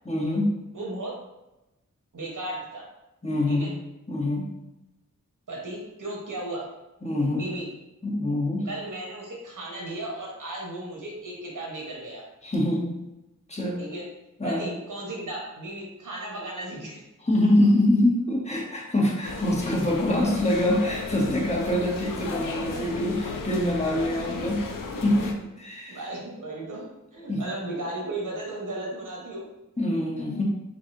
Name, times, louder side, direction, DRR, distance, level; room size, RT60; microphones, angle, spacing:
voice 1, 0.0-0.5 3.2-3.7 4.1-4.4 7.0-7.4 8.0-8.6 12.4-13.0 13.5-13.8 14.4-14.7 17.2-24.6 25.0-26.0 27.3-27.4 29.8-30.4, left 1 dB, 20° left, -4 dB, 1.2 m, -24 dB
voice 2, 0.7-1.2 2.1-2.9 3.5-3.7 5.5-6.7 7.3-7.7 8.6-12.3 13.8-14.1 14.4-17.0 25.9-26.9 27.1-29.4, right 2 dB, 70° right, -3 dB, 1.2 m, -35 dB
sound 1, 19.2-25.3, left 3 dB, 80° left, 0.5 m, -34 dB
3.8 x 3.3 x 2.7 m, 0.96 s
wide cardioid pair, 55°, 32 cm